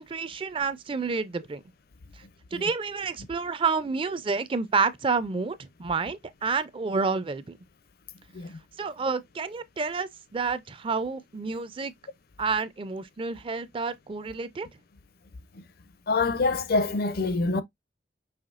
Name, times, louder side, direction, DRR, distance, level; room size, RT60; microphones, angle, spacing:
voice 1, 0.0-1.6 2.5-7.6 8.8-11.9 12.4-14.7, right 4 dB, 30° right, 0.4 m, -29 dB
voice 2, 16.1-17.6, left 3 dB, 60° left, 0.6 m, -26 dB
5.7 x 3.0 x 2.5 m
head